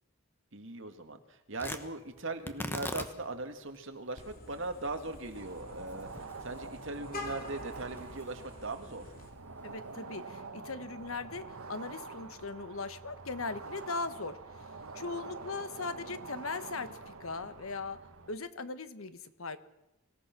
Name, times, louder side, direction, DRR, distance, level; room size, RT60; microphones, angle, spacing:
voice 1, 0.5-6.1 6.4-9.0, right 2 dB, 65° right, 6 dB, 2.2 m, -39 dB
Tearing, 1.6-9.9, left 1 dB, 10° left, 1.1 m, -45 dB
Vehicle horn car horn honking, 4.2-9.3, left 2 dB, 40° left, 3.7 m, -47 dB
sound 1, 5.3-18.3, right 4 dB, 90° right, 1.5 m, -46 dB
voice 2, 9.6-14.4 14.6-18.0 18.3-19.6, left 4 dB, 80° left, 11 dB, 1.3 m, -39 dB
25.0 x 17.0 x 6.1 m, 0.93 s
head